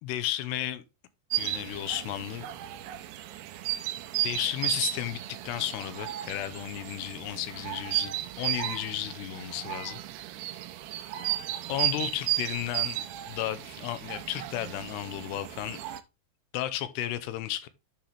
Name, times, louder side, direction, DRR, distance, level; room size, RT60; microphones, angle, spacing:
voice 1, 0.0-0.8 1.4-2.5 4.2-10.0 11.7-15.8 16.5-17.7, left 13 dB, 85° left, 2.8 m, -33 dB
sound 1, 1.3-16.0, right 15 dB, 85° right, 2.8 m, -34 dB
10.5 x 5.8 x 3.3 m
omnidirectional pair, 4.9 m